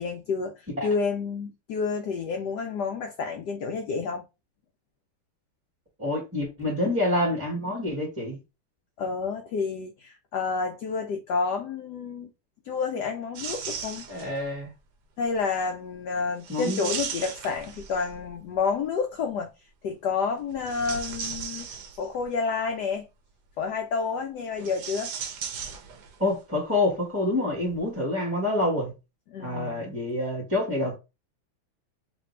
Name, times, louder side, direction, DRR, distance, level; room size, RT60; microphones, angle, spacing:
voice 1, 0.0-4.2 9.0-12.3 12.6-14.1 15.2-19.5 19.8-21.7 22.0-23.1 23.6-25.1 29.3-30.0, left 5 dB, 80° left, 0.9 m, -29 dB
voice 2, 6.0-8.4 14.1-14.7 16.5-17.0 26.2-28.9 29.4-31.0, left 1 dB, 10° right, 0.9 m, -27 dB
sound 1, 13.3-14.5 16.4-18.3 20.5-22.3 24.5-26.3 26.5-26.6 27.6-27.8, right 7 dB, 70° right, 1.1 m, -36 dB
3.3 x 2.6 x 4.2 m
omnidirectional pair, 2.4 m